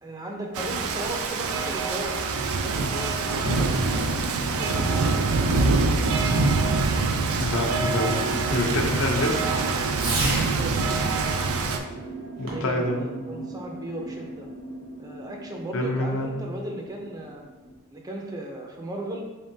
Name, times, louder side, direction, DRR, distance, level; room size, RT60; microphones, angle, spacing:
voice 1, 0.0-2.2 2.5-4.0 4.4-5.1 5.5-5.9 10.5-11.4 12.5-14.5 15.0-17.5 17.9-19.2, right 1 dB, 20° right, 0 dB, 0.4 m, -36 dB
Rain, 0.5-11.8, right 3 dB, 85° right, 0.4 m, -25 dB
Fireworks, 3.6-10.7 12.4-12.8, right 2 dB, 70° right, 1.0 m, -38 dB
sound 1, 3.8-17.8, right 2 dB, 50° right, 0.7 m, -39 dB
voice 2, 7.4-9.4 12.4-13.1 15.7-16.3, left 1 dB, 65° left, 1 dB, 0.6 m, -26 dB
3.7 x 3.5 x 2.7 m, 1.1 s
head